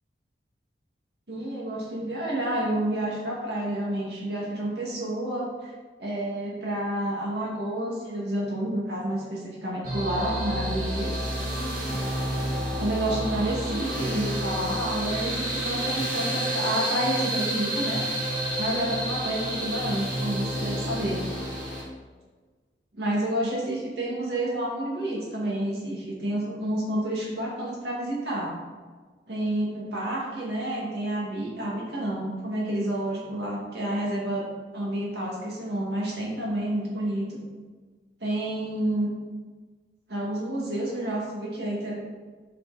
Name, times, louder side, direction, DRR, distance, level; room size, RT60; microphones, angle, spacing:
voice 1, 1.3-5.7 6.0-11.1 12.8-18.0 18.6-21.2 23.0-28.5 29.3-34.4 34.7-37.4 38.2-39.1 40.1-41.9, right 1 dB, 70° right, -4 dB, 2.3 m, -29 dB
sound 1, 9.8-21.8, equal, 50° right, 2.1 m, -29 dB
6.8 x 5.8 x 4.2 m, 1.4 s
head